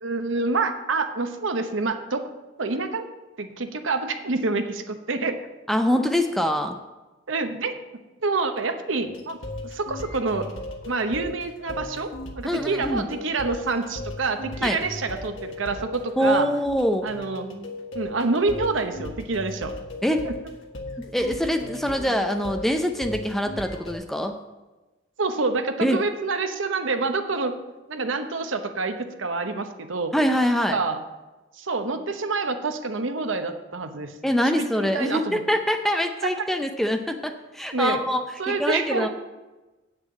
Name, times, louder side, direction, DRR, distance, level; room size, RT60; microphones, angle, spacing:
voice 1, 0.0-2.3 2.6-3.1 3.4-5.4 7.3-7.7 8.2-9.4 9.6-10.5 10.8-12.1 12.3-16.5 17.0-17.5 17.9-19.7 20.2-20.3 25.2-27.5 27.9-30.1 30.7-31.0 31.6-34.1 34.5-35.4 36.2-36.3 37.7-38.0 38.4-39.1, right 3 dB, 80° right, 7 dB, 0.9 m, -27 dB
voice 2, 5.7-6.8 12.4-13.1 14.6-14.8 16.2-17.1 20.0-20.2 21.1-24.3 25.8-26.0 30.1-30.8 34.2-38.2 38.5-39.1, equal, ahead, 5 dB, 0.5 m, -24 dB
sound 1, 9.0-23.9, left 1 dB, 85° left, 1.6 m, -37 dB
8.3 x 6.4 x 7.5 m, 1.1 s
head